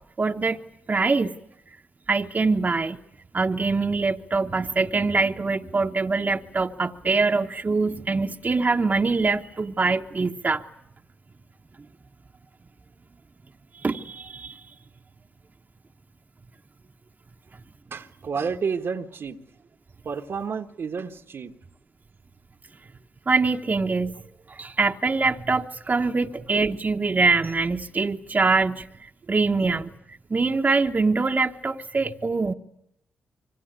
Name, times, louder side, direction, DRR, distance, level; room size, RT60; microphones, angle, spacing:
voice 1, 0.2-0.6 0.9-1.3 2.1-3.0 3.3-10.6 13.8-14.6 23.3-24.2 24.5-29.9 30.3-32.5, right 4 dB, 40° right, 3 dB, 1.2 m, -24 dB
voice 2, 17.9-19.4 20.0-21.5, right 5 dB, 60° right, 5 dB, 1.5 m, -30 dB
26.5 x 24.0 x 8.2 m, 0.81 s
hypercardioid pair, 40°, 5 cm